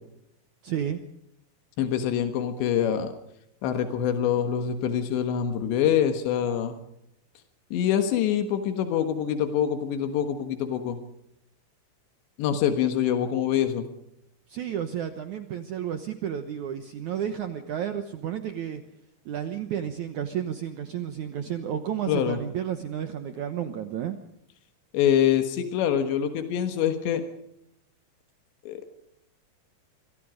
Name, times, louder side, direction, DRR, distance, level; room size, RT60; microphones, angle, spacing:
voice 1, 0.6-1.0 14.5-18.8 19.2-24.2, right 9 dB, 75° right, 8 dB, 1.7 m, -32 dB
voice 2, 1.8-3.1 3.6-6.8 7.7-11.0 12.4-13.9 22.1-22.4 24.9-27.2 28.7-28.8, left 9 dB, 90° left, 7 dB, 3.8 m, -25 dB
26.0 x 22.0 x 5.1 m, 0.77 s
omnidirectional pair, 4.9 m